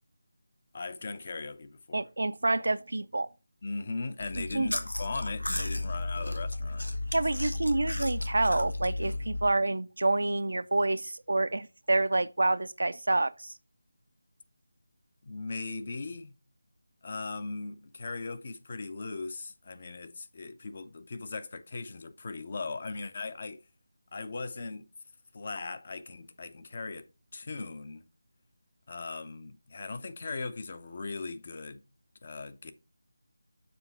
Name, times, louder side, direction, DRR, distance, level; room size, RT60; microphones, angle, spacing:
voice 1, 0.7-2.0 3.6-6.9 15.2-16.4 17.0-23.6 24.1-24.9 25.3-27.1 27.3-28.0 28.9-31.8 32.2-32.7, left 3 dB, 40° left, 0.7 m, -38 dB
voice 2, 1.9-3.3 4.5-4.7 7.1-13.5, right 2 dB, 65° right, 0.4 m, -28 dB
Chewing mastication, 4.2-9.5, left 2 dB, 90° left, 1.2 m, -34 dB
6.9 x 3.5 x 5.6 m
figure-of-eight pair, 160°, 0 cm